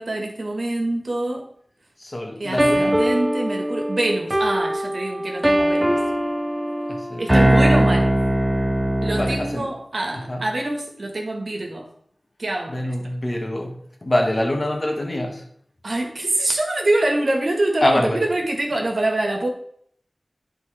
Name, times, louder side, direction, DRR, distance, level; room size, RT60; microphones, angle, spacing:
voice 1, 0.0-1.5 2.4-6.0 7.2-8.2 9.0-11.9 12.4-12.9 15.8-19.5, right 1 dB, 70° right, 2 dB, 1.5 m, -25 dB
voice 2, 2.0-3.0 6.9-7.3 9.1-9.7 10.1-10.5 12.7-15.5 17.8-18.2, left 1 dB, 35° left, 2 dB, 1.4 m, -24 dB
sound 1, 2.6-9.5, right 1 dB, 15° right, 0.7 m, -20 dB
9.6 x 3.9 x 4.8 m, 0.65 s
wide cardioid pair, 70°, 0 cm